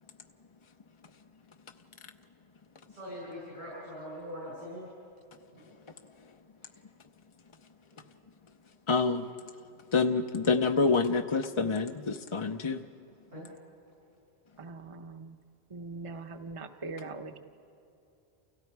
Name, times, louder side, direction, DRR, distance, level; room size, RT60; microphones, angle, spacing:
voice 1, 3.0-4.8 13.3-13.5, equal, 80° right, -6 dB, 6.0 m, -41 dB
voice 2, 8.9-9.3 9.9-12.9, left 4 dB, 35° left, 6 dB, 0.6 m, -27 dB
voice 3, 14.6-15.4 15.7-17.4, right 3 dB, 30° right, 6 dB, 1.0 m, -41 dB
29.5 x 29.0 x 4.7 m, 2.8 s
omnidirectional pair, 1.1 m